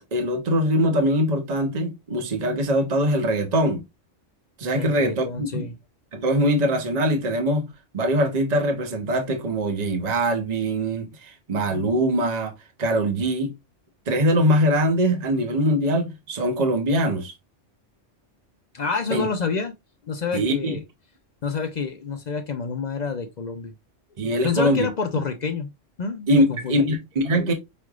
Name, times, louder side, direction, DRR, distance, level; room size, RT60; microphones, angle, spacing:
voice 1, 0.1-3.8 4.6-5.7 6.1-7.7 7.9-12.5 12.8-13.5 14.1-17.3 19.1-19.3 20.3-20.8 24.2-24.9 26.3-27.5, equal, 40° right, 0.9 m, -22 dB
voice 2, 4.8-5.8 18.7-19.7 20.1-20.8 21.4-23.7 24.4-25.7 26.0-26.9, left 5 dB, 50° left, 0.5 m, -28 dB
5.1 x 3.2 x 2.3 m
omnidirectional pair, 1.2 m